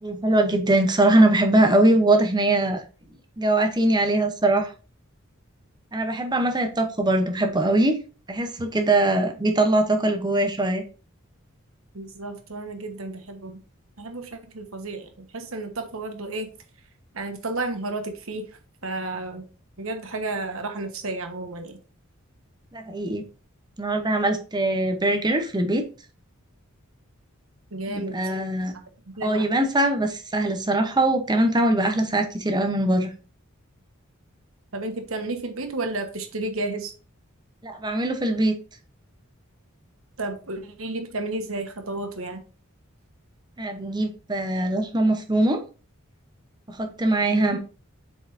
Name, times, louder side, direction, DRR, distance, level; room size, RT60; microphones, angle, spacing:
voice 1, 0.0-2.8 3.4-4.7 5.9-8.0 8.3-10.8 22.7-23.2 23.8-25.8 27.9-28.7 29.2-33.1 37.6-38.5 43.6-45.6 46.7-47.6, right 1 dB, 20° right, 5 dB, 0.9 m, -22 dB
voice 2, 11.9-13.6 14.0-16.5 17.1-18.4 18.8-19.4 19.8-21.8 27.7-28.2 29.2-29.5 34.7-36.9 40.2-42.4 47.3-47.6, right 2 dB, 70° right, 5 dB, 1.3 m, -32 dB
8.0 x 4.7 x 2.7 m, 0.36 s
head